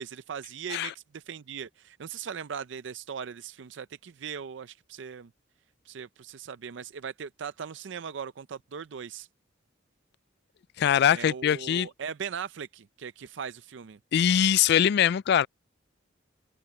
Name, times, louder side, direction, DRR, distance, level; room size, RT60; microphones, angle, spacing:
voice 1, 0.0-5.3 5.9-9.3 11.1-14.0, right 7 dB, 65° right, 0.5 m, -39 dB
voice 2, 10.8-11.9 14.1-15.5, left 9 dB, 55° left, 0.3 m, -22 dB
open air
head